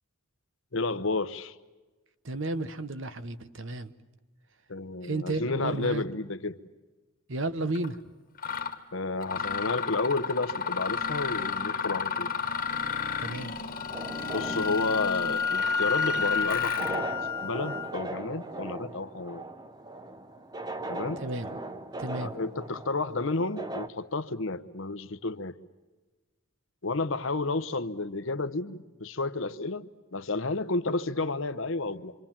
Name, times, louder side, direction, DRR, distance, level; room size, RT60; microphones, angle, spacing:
voice 1, 0.7-1.5 4.7-6.6 8.9-12.3 14.3-17.1 17.4-19.4 20.9-21.2 22.2-25.6 26.8-32.1, left 3 dB, 60° left, 13 dB, 0.9 m, -31 dB
voice 2, 2.2-3.9 5.0-6.0 7.3-8.0 13.2-13.5 16.8-16.9 21.2-21.5 22.0-22.3, right 2 dB, 60° right, 13 dB, 1.0 m, -33 dB
Mechanisms, 7.8-7.9 8.4-8.8 9.2-17.0, left 6 dB, 40° left, 1.6 m, -33 dB
Wind instrument woodwind instrument, 13.7-17.9, left 5 dB, 15° left, 1.3 m, -30 dB
sound 1, 13.9-23.9, right 1 dB, 20° right, 0.8 m, -39 dB
27.0 x 26.0 x 7.4 m, 1.2 s
head